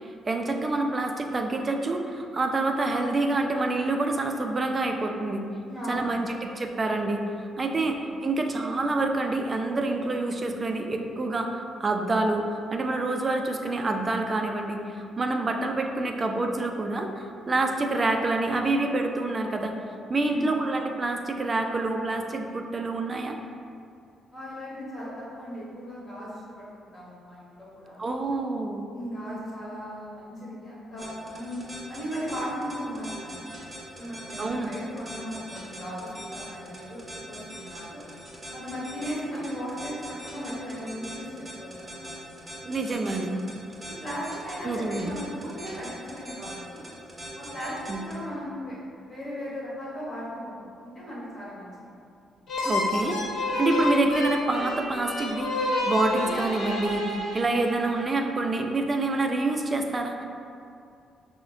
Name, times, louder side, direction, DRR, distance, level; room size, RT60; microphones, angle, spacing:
voice 1, 0.3-5.4 5.9-19.8 20.1-23.4 28.0-28.8 34.4-34.7 42.6-43.3 44.6-45.2 47.9-48.0 52.6-60.2, right 2 dB, 30° right, 4 dB, 0.3 m, -27 dB
voice 2, 5.7-6.3 20.2-20.5 24.3-28.0 28.9-33.5 34.0-38.1 38.5-42.2 43.8-46.8 47.3-48.8 49.0-51.9, equal, 30° left, -8 dB, 1.5 m, -37 dB
sound 1, 31.0-48.1, right 1 dB, 15° right, 1.0 m, -41 dB
sound 2, 52.5-58.0, left 2 dB, 55° left, 0.6 m, -29 dB
5.6 x 2.1 x 2.5 m, 2.5 s
cardioid pair, 90°, 0 cm